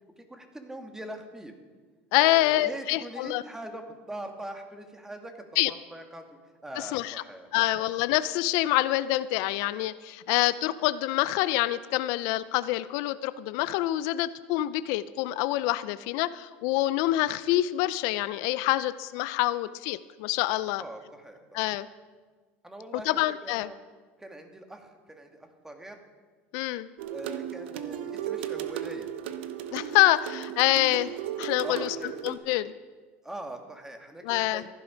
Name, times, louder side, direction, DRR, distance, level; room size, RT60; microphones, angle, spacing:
voice 1, 0.2-1.5 2.2-6.2 6.6-7.9 20.8-21.6 22.6-23.8 24.2-26.0 27.1-29.1 31.6-32.2 33.2-34.7, right 1 dB, 10° right, 4 dB, 2.0 m, -42 dB
voice 2, 2.1-3.4 5.6-5.7 6.8-7.2 7.5-20.8 21.5-21.9 23.0-23.7 26.5-26.9 29.7-31.1 31.4-31.9 32.2-32.7 34.2-34.6, left 16 dB, 70° left, 15 dB, 0.5 m, -26 dB
sound 1, 27.0-32.4, right 10 dB, 90° right, 0.9 m, -35 dB
15.0 x 11.5 x 5.1 m, 1.4 s
supercardioid pair, 95°, 6 cm